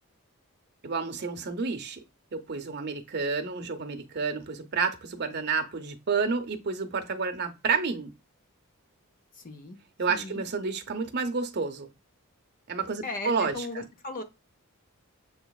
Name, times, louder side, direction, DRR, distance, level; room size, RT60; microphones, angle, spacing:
voice 1, 0.8-2.0 2.3-8.1 10.0-11.9 12.7-13.9, right 5 dB, 50° right, 0.7 m, -30 dB
voice 2, 9.4-9.8 10.1-10.4 13.0-14.2, left 2 dB, 40° left, 0.6 m, -37 dB
6.9 x 3.0 x 2.3 m
head